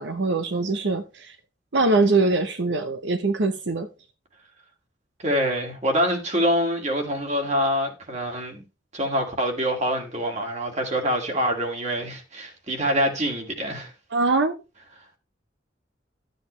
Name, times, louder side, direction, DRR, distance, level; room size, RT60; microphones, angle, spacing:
voice 1, 0.0-1.3 1.7-3.9 14.1-14.5, right 3 dB, 80° right, 0.8 m, -23 dB
voice 2, 5.2-8.6 8.9-13.9, equal, 40° right, 2.2 m, -25 dB
12.5 x 7.7 x 3.2 m
head